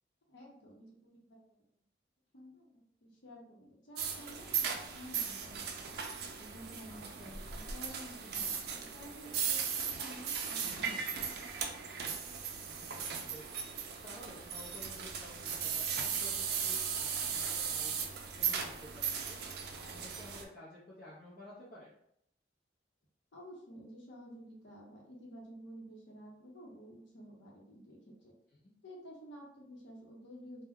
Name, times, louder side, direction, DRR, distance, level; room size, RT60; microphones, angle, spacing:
voice 1, 0.3-1.7 2.3-6.0 6.4-11.4 23.3-28.3 28.8-30.6, equal, 90° left, -1 dB, 0.8 m, -52 dB
sound 1, 4.0-20.4, right 7 dB, 60° right, 0.4 m, -37 dB
voice 2, 6.9-7.2 12.6-13.6 14.0-18.1 18.4-21.9 28.6-28.7, left 1 dB, 55° left, -8 dB, 0.6 m, -53 dB
2.2 x 2.2 x 3.5 m, 0.73 s
head